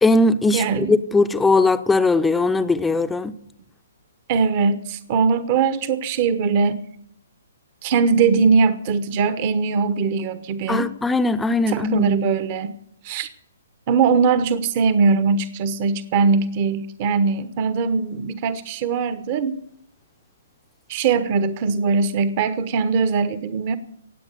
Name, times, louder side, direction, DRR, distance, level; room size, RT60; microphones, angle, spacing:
voice 1, 0.0-3.4 10.7-12.1, left 3 dB, 5° left, 10 dB, 0.7 m, -19 dB
voice 2, 0.5-0.9 4.3-6.8 7.8-10.9 11.7-12.7 13.0-13.3 13.9-19.6 20.9-23.8, right 5 dB, 40° right, 14 dB, 1.1 m, -21 dB
18.0 x 8.1 x 8.1 m, 0.72 s
figure-of-eight pair, 130°, 0 cm